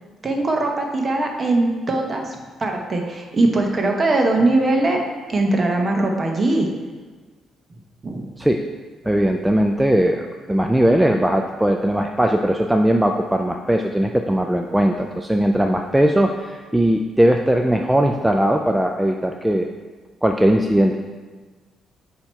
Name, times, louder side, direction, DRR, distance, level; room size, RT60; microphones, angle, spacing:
voice 1, 0.2-5.0 5.3-6.7 8.0-8.3, right 2 dB, 35° right, 2 dB, 1.0 m, -20 dB
voice 2, 9.0-19.7 20.2-21.0, right 1 dB, 5° right, 3 dB, 0.3 m, -19 dB
8.6 x 2.9 x 4.4 m, 1.4 s
cardioid pair, 90°, 0 cm